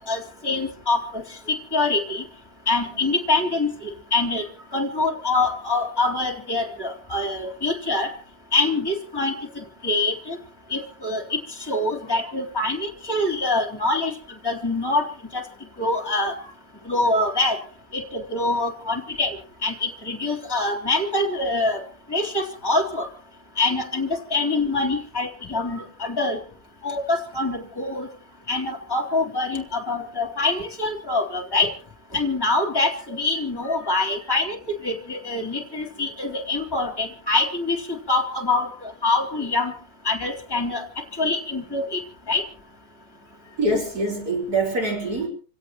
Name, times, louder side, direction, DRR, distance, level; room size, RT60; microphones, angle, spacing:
voice 1, 0.1-1.2 1.7-2.2 2.7-4.4 4.7-8.1 8.5-9.3 9.8-10.4 10.7-11.4 11.7-14.1 14.4-15.1 15.3-15.4 15.8-16.3 16.9-17.6 17.9-19.4 19.6-21.8 22.1-23.1 23.6-26.4 26.8-28.1 28.5-31.7 32.1-34.6 34.8-38.7 39.0-39.7 40.1-40.9 41.2-42.0 42.3-42.4, left 2 dB, 10° left, 3.5 m, -24 dB
voice 2, 43.2-45.3, right 2 dB, 40° right, 5.7 m, -26 dB
28.0 x 17.0 x 3.1 m
omnidirectional pair, 2.4 m